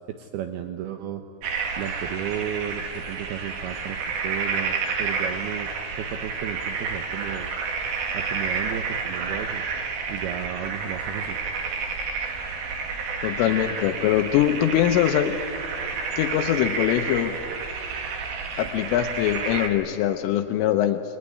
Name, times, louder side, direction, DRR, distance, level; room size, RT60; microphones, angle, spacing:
voice 1, 0.1-1.2 1.8-5.7 6.0-7.5 8.1-9.7 10.1-11.4, right 10 dB, 85° right, 7 dB, 2.2 m, -33 dB
sound 1, 1.4-19.7, right 5 dB, 55° right, 3.7 m, -30 dB
voice 2, 13.2-15.4 16.2-17.4 18.6-21.0, left 12 dB, 80° left, 6 dB, 3.4 m, -22 dB
28.5 x 21.0 x 9.9 m, 2.5 s
omnidirectional pair, 5.9 m